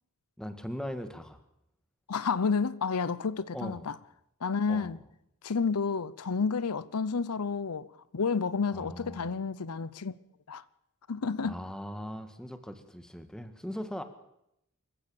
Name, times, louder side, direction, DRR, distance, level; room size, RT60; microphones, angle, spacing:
voice 1, 0.4-1.4 3.5-3.9 4.7-5.0 8.7-9.3 11.4-14.0, equal, 5° left, 1.7 m, -39 dB
voice 2, 2.1-4.0 4.4-5.0 5.4-7.9 8.1-10.1 10.5-10.6 11.1-11.6, left 5 dB, 80° left, 0.7 m, -30 dB
25.5 x 15.0 x 7.1 m
head